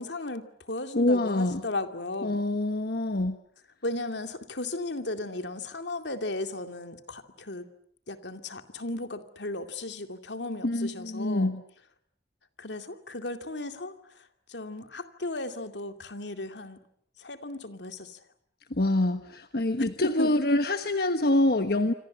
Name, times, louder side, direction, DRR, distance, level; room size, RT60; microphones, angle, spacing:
voice 1, 0.0-2.4 3.8-7.7 8.1-11.5 12.6-16.8 17.2-18.2 20.0-20.3, left 2 dB, 80° left, 7 dB, 2.6 m, -35 dB
voice 2, 0.9-1.6 2.2-3.4 10.6-11.6 18.7-21.9, left 1 dB, 60° left, 8 dB, 1.3 m, -25 dB
27.0 x 26.0 x 7.5 m, 0.65 s
head